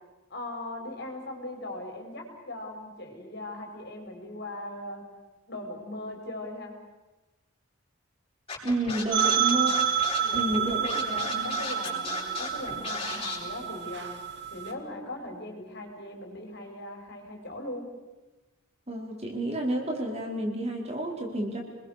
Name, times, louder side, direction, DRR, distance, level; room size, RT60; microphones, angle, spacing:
voice 1, 0.3-5.0 5.5-6.7 9.0-9.3 10.2-14.1 14.5-17.9, left 1 dB, 50° left, 2 dB, 5.5 m, -39 dB
Scratching (performance technique), 8.5-13.4, left 4 dB, 25° left, 7.0 m, -35 dB
voice 2, 8.6-9.7 10.3-11.0 18.9-21.6, right 1 dB, 30° right, 0 dB, 4.7 m, -30 dB
sound 1, 9.1-14.7, right 8 dB, 50° right, 2.7 m, -29 dB
30.0 x 22.0 x 6.8 m, 1.1 s
head